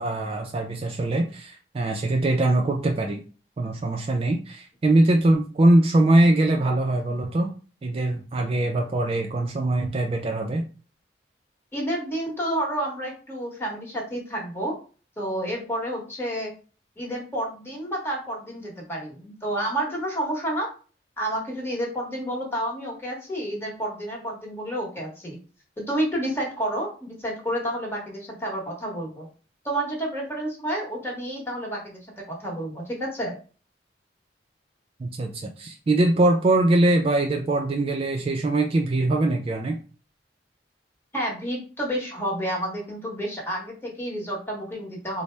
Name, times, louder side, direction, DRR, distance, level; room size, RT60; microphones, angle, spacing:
voice 1, 0.0-3.2 3.6-7.5 7.8-10.6 35.0-39.8, right 2 dB, 35° right, 3 dB, 0.3 m, -22 dB
voice 2, 11.7-14.7 15.2-16.5 17.0-20.7 21.2-25.4 25.8-29.3 29.6-33.4 41.1-45.2, right 1 dB, 15° left, -2 dB, 1.1 m, -30 dB
4.0 x 2.0 x 3.3 m, 0.38 s
head